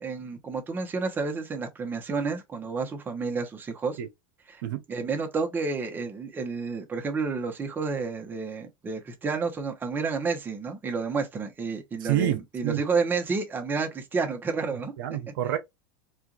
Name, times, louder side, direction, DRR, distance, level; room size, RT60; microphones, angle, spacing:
voice 1, 0.0-4.0 4.5-4.6 4.9-14.9, right 4 dB, 15° right, 1.0 m, -30 dB
voice 2, 12.0-12.8 15.0-15.6, right 12 dB, 70° right, 0.8 m, -28 dB
4.4 x 2.5 x 2.5 m
supercardioid pair, 140°, 12 cm